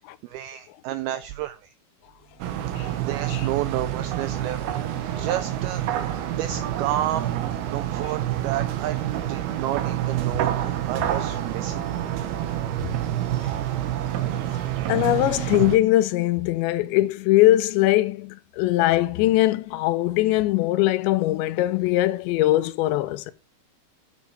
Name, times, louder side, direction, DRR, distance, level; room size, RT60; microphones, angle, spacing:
voice 1, 0.2-1.7 3.0-4.6 5.2-7.3 7.7-9.0 9.3-11.8, right 12 dB, 85° right, 2.2 m, -31 dB
sound 1, 2.4-15.8, right 12 dB, 70° right, 2.9 m, -27 dB
voice 2, 14.9-23.3, left 16 dB, 85° left, 3.0 m, -21 dB
9.1 x 7.4 x 5.0 m
omnidirectional pair, 5.0 m